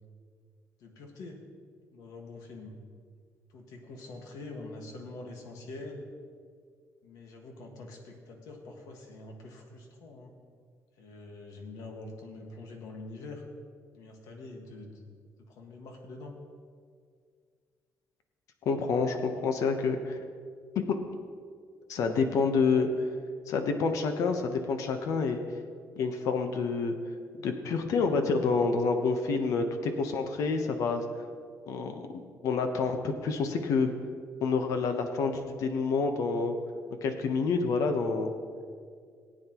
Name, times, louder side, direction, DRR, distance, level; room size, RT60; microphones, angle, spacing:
voice 1, 0.8-1.4 1.9-2.8 3.5-6.1 7.0-10.3 11.0-13.4 13.9-15.0 15.5-16.3, left 2 dB, 90° left, 2 dB, 1.7 m, -45 dB
voice 2, 18.6-20.2 20.7-21.0 21.9-22.9 23.5-25.4 26.0-26.9 27.4-31.0 31.7-33.9 34.4-36.5 37.0-38.3, left 4 dB, 70° left, 6 dB, 1.1 m, -28 dB
18.5 x 8.9 x 3.1 m, 2.1 s
cardioid pair, 165°, 6 cm